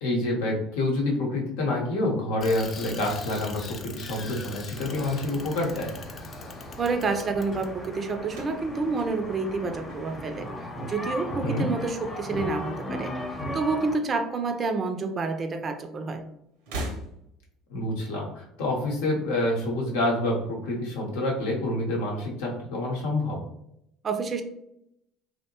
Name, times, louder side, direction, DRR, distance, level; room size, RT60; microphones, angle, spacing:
voice 1, 0.0-6.0 11.4-11.7 17.7-23.5, left 1 dB, 80° left, -2 dB, 0.8 m, -27 dB
Bicycle, 2.4-7.9, left 4 dB, 40° left, 0.4 m, -42 dB
sound 1, 4.7-13.9, left 1 dB, 20° left, 0.8 m, -37 dB
voice 2, 6.8-10.5 10.9-16.2 24.0-24.4, right 4 dB, 35° right, 6 dB, 0.4 m, -29 dB
sound 2, 8.3-10.6 10.9-11.5 12.5-13.6 13.8-13.9 15.1-15.2 16.5-17.6, right 1 dB, 80° right, 0.6 m, -39 dB
2.7 x 2.1 x 2.8 m, 0.78 s
hypercardioid pair, 75°, 0 cm